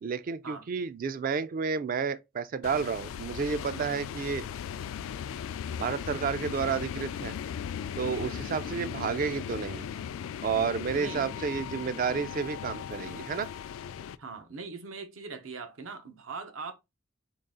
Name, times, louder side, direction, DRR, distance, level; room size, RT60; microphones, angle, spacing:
voice 1, 0.0-4.5 5.8-7.4 8.0-9.9 10.4-13.5, right 5 dB, 45° right, 0.3 m, -31 dB
sound 1, 2.6-14.2, left 8 dB, 85° left, 0.3 m, -38 dB
voice 2, 6.4-6.8 8.0-8.5 10.9-11.6 14.2-16.7, right 4 dB, 85° right, 0.8 m, -42 dB
3.8 x 2.3 x 3.7 m
head